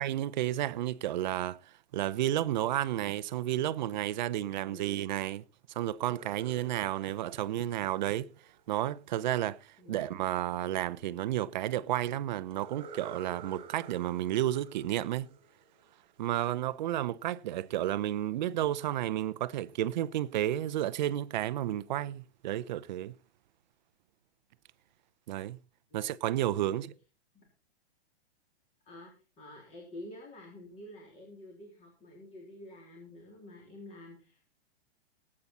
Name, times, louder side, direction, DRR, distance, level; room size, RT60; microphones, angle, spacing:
voice 1, 0.0-5.4 5.7-8.3 8.7-15.3 16.2-23.1 25.3-25.6 25.9-26.9, right 13 dB, 45° right, 0.7 m, -32 dB
voice 2, 4.6-5.0 9.8-10.2 25.9-26.2 26.6-26.9 27.3-27.5 28.9-29.1 29.4-34.5, left 1 dB, 20° left, 3.5 m, -49 dB
sound 1, 5.9-8.9 12.5-16.2, right 5 dB, 15° right, 3.3 m, -51 dB
19.0 x 8.7 x 4.2 m
hypercardioid pair, 155°, 33 cm